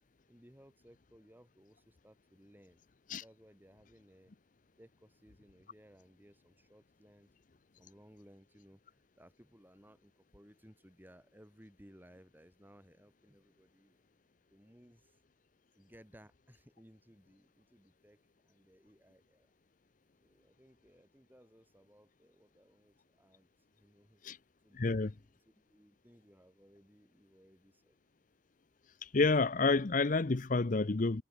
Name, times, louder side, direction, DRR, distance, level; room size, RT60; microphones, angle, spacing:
voice 1, 0.3-2.8 3.1-4.3 4.8-7.3 7.8-14.0 14.5-15.2 15.7-19.5 20.2-24.2 24.6-28.0, equal, 10° right, 7.3 m, -61 dB
voice 2, 24.7-25.1 29.0-31.2, left 3 dB, 40° left, 0.6 m, -29 dB
head